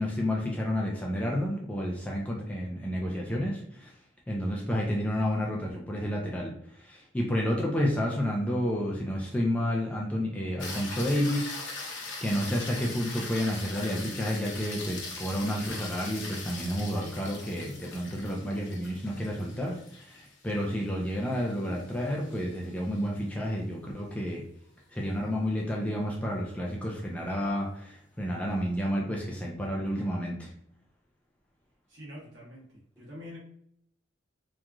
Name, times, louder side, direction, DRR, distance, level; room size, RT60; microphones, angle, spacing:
voice 1, 0.0-3.9 4.3-24.4 24.9-30.5, equal, 5° left, -3 dB, 0.3 m, -30 dB
sound 1, 10.6-23.0 27.5-27.6, left 3 dB, 65° left, 0.7 m, -41 dB
voice 2, 31.9-33.4, left 1 dB, 60° right, -5 dB, 1.2 m, -45 dB
2.9 x 2.4 x 2.3 m, 0.68 s
head